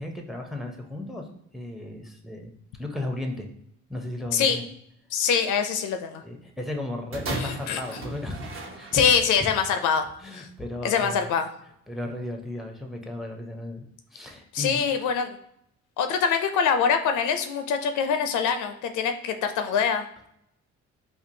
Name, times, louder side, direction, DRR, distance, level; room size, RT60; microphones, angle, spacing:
voice 1, 0.0-2.5 2.8-3.5 3.9-4.6 6.2-9.0 10.2-11.3 11.9-13.9 14.1-14.8, left 1 dB, ahead, 3 dB, 0.5 m, -35 dB
voice 2, 5.1-6.2 7.4-7.8 8.9-10.0 10.3-10.5 10.8-11.5 14.5-15.4 16.0-20.3, left 6 dB, 80° left, 7 dB, 0.5 m, -24 dB
sound 1, 7.1-9.4 10.2-10.3, right 2 dB, 45° right, 0.9 m, -36 dB
4.3 x 2.4 x 2.6 m, 0.74 s
cardioid pair, 90°, 30 cm